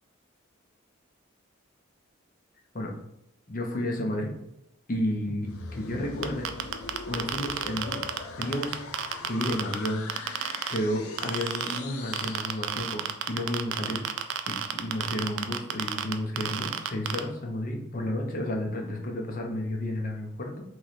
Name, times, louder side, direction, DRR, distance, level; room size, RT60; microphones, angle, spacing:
voice 1, 3.5-4.3 4.9-6.5 7.1-8.1 8.4-10.1 10.7-13.0 13.3-14.0 14.5-20.6, left 1 dB, 40° left, 2 dB, 0.8 m, -32 dB
sound 1, 5.3-13.2, left 4 dB, 90° left, 0.5 m, -41 dB
sound 2, 6.2-10.8 11.2-11.8 12.1-17.2, right 9 dB, 60° right, 0.4 m, -30 dB
3.7 x 3.2 x 4.1 m, 0.81 s
head